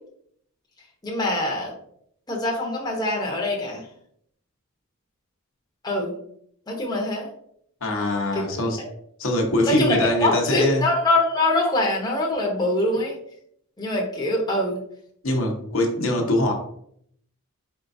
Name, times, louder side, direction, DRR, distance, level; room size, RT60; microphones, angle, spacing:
voice 1, 1.0-1.7 2.3-3.9 5.8-6.1 6.7-7.3 8.3-8.9 9.6-13.2 13.8-14.8, left 1 dB, 20° left, -2 dB, 0.9 m, -24 dB
voice 2, 7.8-8.8 9.2-10.9 15.2-16.5, left 1 dB, 60° left, 1 dB, 1.0 m, -23 dB
4.5 x 4.4 x 2.6 m, 0.67 s
head